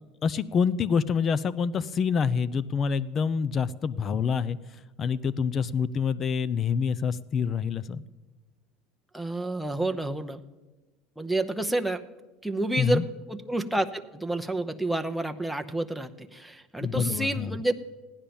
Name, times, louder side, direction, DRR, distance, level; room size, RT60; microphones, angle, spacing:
voice 1, 0.2-4.6 5.0-8.0 12.8-13.0 16.8-17.6, left 6 dB, 35° left, 18 dB, 0.6 m, -26 dB
voice 2, 9.1-10.4 11.2-12.0 12.4-17.7, right 1 dB, ahead, 5 dB, 0.8 m, -29 dB
16.0 x 10.5 x 7.1 m, 1.2 s
supercardioid pair, 110°, 0 cm